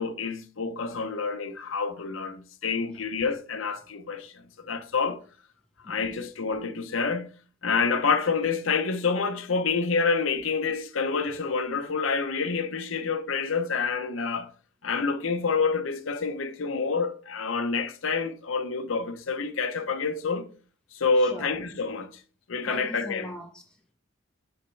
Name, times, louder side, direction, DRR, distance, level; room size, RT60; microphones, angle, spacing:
voice 1, 0.0-4.3 4.6-5.2 5.9-7.3 7.6-14.5 14.8-20.5 20.9-22.1 22.5-23.3, left 4 dB, 90° left, 0.7 m, -28 dB
voice 2, 21.2-21.5 22.6-23.9, left 1 dB, 5° left, 1.0 m, -42 dB
6.8 x 4.3 x 3.2 m
head